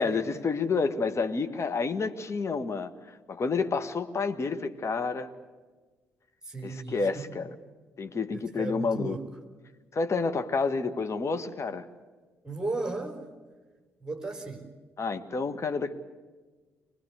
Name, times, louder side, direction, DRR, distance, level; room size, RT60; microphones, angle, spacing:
voice 1, 0.0-5.3 6.6-7.5 8.0-9.2 9.9-11.8 15.0-15.9, left 4 dB, 40° left, 8 dB, 1.8 m, -29 dB
voice 2, 6.5-7.3 8.3-9.2 12.4-13.2 14.0-14.7, right 3 dB, 10° right, 5 dB, 4.3 m, -35 dB
24.5 x 20.0 x 8.1 m, 1.3 s
hypercardioid pair, 45°, 7 cm